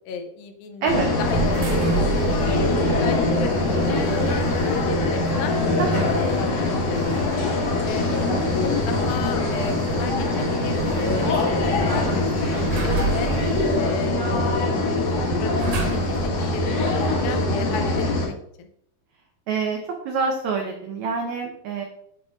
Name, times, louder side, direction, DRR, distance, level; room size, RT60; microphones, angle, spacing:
voice 1, 0.1-2.7 3.0-3.5 3.9-4.0 4.3-5.5 5.9-7.0 7.3-7.5 7.8-8.3 8.9-15.5 15.8-18.7, left 5 dB, 85° left, 6 dB, 2.4 m, -34 dB
sound 1, 0.9-18.3, left 2 dB, 60° left, 2.2 m, -23 dB
sound 2, 1.2-16.4, right 1 dB, 70° right, 2.3 m, -30 dB
voice 2, 8.1-8.4 19.5-21.9, right 5 dB, 90° right, 2 dB, 1.6 m, -26 dB
8.5 x 4.6 x 2.5 m, 0.71 s
omnidirectional pair, 4.1 m